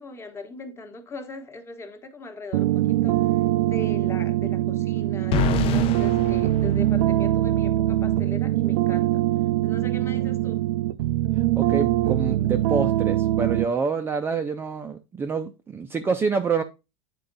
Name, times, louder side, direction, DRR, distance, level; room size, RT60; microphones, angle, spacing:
voice 1, 0.0-10.7, left 3 dB, 20° left, 1.2 m, -40 dB
sound 1, 2.5-13.7, right 14 dB, 90° right, 0.5 m, -23 dB
sound 2, 5.3-7.5, left 9 dB, 40° left, 0.6 m, -28 dB
voice 2, 11.6-16.6, right 5 dB, 15° right, 0.5 m, -27 dB
8.5 x 4.5 x 3.9 m
supercardioid pair, 135°, 14 cm